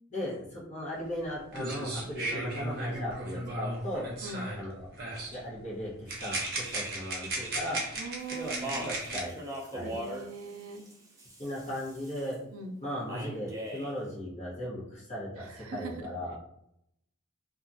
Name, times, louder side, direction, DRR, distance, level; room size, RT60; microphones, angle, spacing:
voice 1, 0.1-4.1 4.5-4.9 5.3-7.8 8.3-8.5 8.8-9.4 9.7-10.0 11.4-12.4 12.8-16.4, equal, 35° left, -6 dB, 1.0 m, -37 dB
sound 1, 1.2-1.3 1.5-4.7 5.0-5.4 6.1-9.2, right 2 dB, 50° right, 0.7 m, -36 dB
voice 2, 7.9-8.8 9.8-10.8 12.5-12.8 15.4-15.9, right 3 dB, 80° right, 3 dB, 0.5 m, -41 dB
Speech, 8.2-12.4 13.1-13.9, right 1 dB, 15° right, 0.5 m, -41 dB
2.9 x 2.4 x 2.6 m, 0.78 s
head